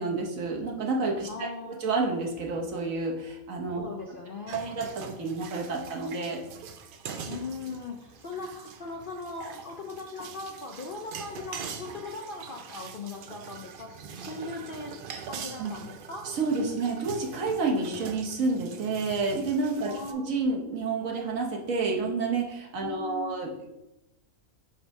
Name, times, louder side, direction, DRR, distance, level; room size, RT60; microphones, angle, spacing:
voice 1, 0.0-3.9 4.5-4.9 5.2-6.4 15.6-15.7 16.2-23.7, right 3 dB, 65° right, 0 dB, 1.3 m, -29 dB
voice 2, 1.3-1.8 3.8-4.8 7.3-15.0 15.3-16.3 19.8-20.3 22.8-23.4, left 3 dB, 60° left, 1 dB, 0.6 m, -39 dB
sound 1, 4.5-20.1, right 6 dB, 85° right, 0.4 m, -43 dB
5.4 x 3.4 x 5.2 m, 0.91 s
omnidirectional pair, 1.5 m